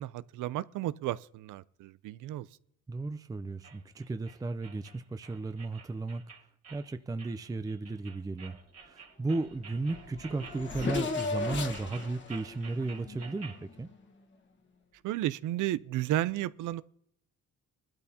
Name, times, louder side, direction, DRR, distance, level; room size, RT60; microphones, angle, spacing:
voice 1, 0.0-2.5 15.0-16.8, right 14 dB, 80° right, 0.5 m, -33 dB
voice 2, 2.9-6.2 6.7-13.9, right 3 dB, 10° right, 0.5 m, -35 dB
sound 1, 3.6-13.6, right 5 dB, 55° right, 2.6 m, -51 dB
Race car auto racing / Accelerating revving vroom, 9.5-9.6 9.8-13.8, left 4 dB, 40° left, 1.4 m, -36 dB
20.0 x 12.0 x 2.8 m
cardioid pair, 90°, 30 cm